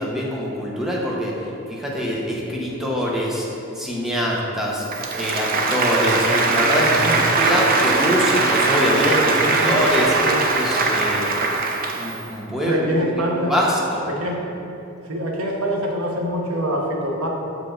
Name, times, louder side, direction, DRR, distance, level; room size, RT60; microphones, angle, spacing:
voice 1, 0.0-3.5 3.8-4.9 5.1-11.5 11.9-14.1, equal, ahead, -4 dB, 0.8 m, -24 dB
Applause, 4.8-12.3, right 3 dB, 45° right, 0.5 m, -21 dB
voice 2, 6.7-7.6 9.4-9.8 10.2-10.4 12.7-13.5 14.0-14.4 15.1-17.3, equal, 90° right, -1 dB, 1.0 m, -25 dB
7.4 x 5.0 x 3.8 m, 2.8 s
head